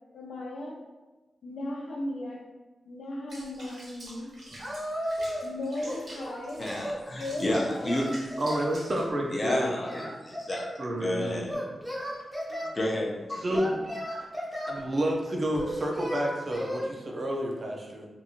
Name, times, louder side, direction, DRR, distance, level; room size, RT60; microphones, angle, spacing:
voice 1, 0.1-0.7 1.4-2.4 2.9-4.3 5.4-6.6 7.2-8.0 12.6-12.7, left 1 dB, 90° left, -3 dB, 0.7 m, -36 dB
Water / Bathtub (filling or washing), 3.3-9.1, right 1 dB, 60° right, 1.0 m, -47 dB
Singing, 4.6-5.5 5.8-7.0 7.5-8.8 9.5-10.8 11.5-12.7 13.5-14.8 15.5-16.9, equal, 5° right, 0.6 m, -35 dB
voice 2, 6.6-8.2 9.3-11.7 12.7-13.8, left 1 dB, 30° left, -1 dB, 0.6 m, -31 dB
voice 3, 8.4-9.7 10.8-11.5 13.3-13.8 14.7-18.1, right 1 dB, 45° right, 0 dB, 0.5 m, -30 dB
2.7 x 2.6 x 2.7 m, 1.2 s
wide cardioid pair, 95°, 0 cm